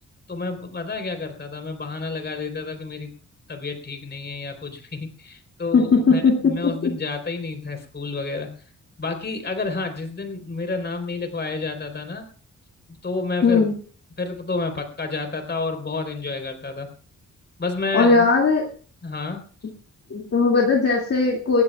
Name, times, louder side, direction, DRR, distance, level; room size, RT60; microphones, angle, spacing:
voice 1, 0.3-3.1 3.5-8.5 9.0-12.3 13.0-13.7 14.2-16.9 17.6-18.3 19.0-19.4, left 3 dB, 35° left, 5 dB, 3.9 m, -30 dB
voice 2, 5.7-6.9 13.4-13.8 17.9-18.6 20.1-21.6, left 4 dB, 50° left, -1 dB, 2.5 m, -18 dB
20.0 x 15.5 x 2.4 m, 0.42 s
wide cardioid pair, 115°, 30 cm